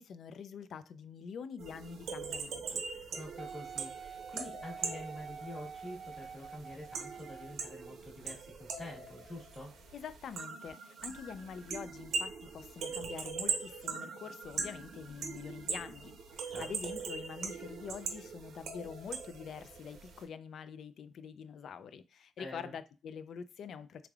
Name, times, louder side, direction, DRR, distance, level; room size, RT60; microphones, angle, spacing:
voice 1, 0.0-2.8 9.9-24.1, left 6 dB, 65° left, 0.3 m, -45 dB
sound 1, 1.6-20.2, right 5 dB, 75° right, 0.7 m, -41 dB
voice 2, 3.1-9.7 16.5-16.7 22.4-22.7, left 1 dB, 25° left, 1.3 m, -47 dB
Wind instrument woodwind instrument, 3.4-7.7 8.3-8.4, right 6 dB, 45° right, 0.3 m, -47 dB
3.5 x 3.3 x 2.3 m
cardioid pair, 90°, 0 cm